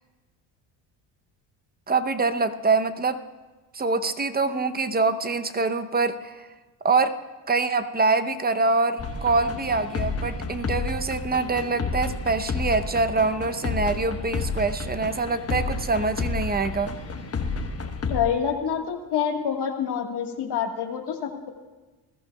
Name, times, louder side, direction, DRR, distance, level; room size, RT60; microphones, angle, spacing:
voice 1, 1.9-3.2 3.7-6.5 6.8-7.2 7.5-16.9, right 3 dB, 20° right, 10 dB, 0.7 m, -24 dB
sound 1, 9.0-18.2, left 4 dB, 30° left, 1.2 m, -30 dB
voice 2, 18.1-21.5, left 8 dB, 55° left, 3 dB, 1.7 m, -27 dB
20.0 x 14.0 x 2.3 m, 1.2 s
supercardioid pair, 80°, 47 cm